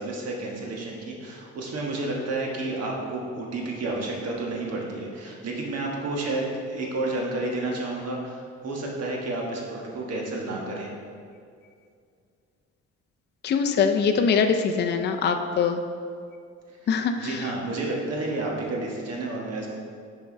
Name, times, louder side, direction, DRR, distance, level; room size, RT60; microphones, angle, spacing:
voice 1, 0.0-10.9 16.8-19.7, right 2 dB, 60° right, -1 dB, 1.4 m, -31 dB
voice 2, 13.4-15.8 16.9-17.3, left 6 dB, 35° left, 5 dB, 0.4 m, -23 dB
7.2 x 4.6 x 4.4 m, 2.3 s
cardioid pair, 140°, 29 cm